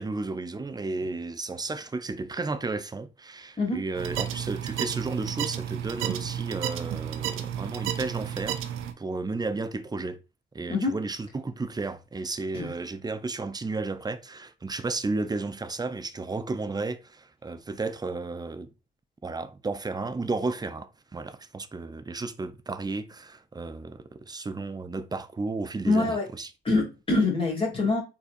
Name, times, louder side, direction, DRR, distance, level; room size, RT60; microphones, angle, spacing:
voice 1, 0.0-10.2 10.5-18.7 19.2-26.5, right 3 dB, 20° right, 0.6 m, -33 dB
sound 1, 3.9-8.9, right 10 dB, 80° right, 0.6 m, -32 dB
voice 2, 25.8-26.2 26.6-28.0, left 3 dB, 25° left, 2.7 m, -24 dB
4.4 x 4.3 x 2.5 m
supercardioid pair, 75°, 20 cm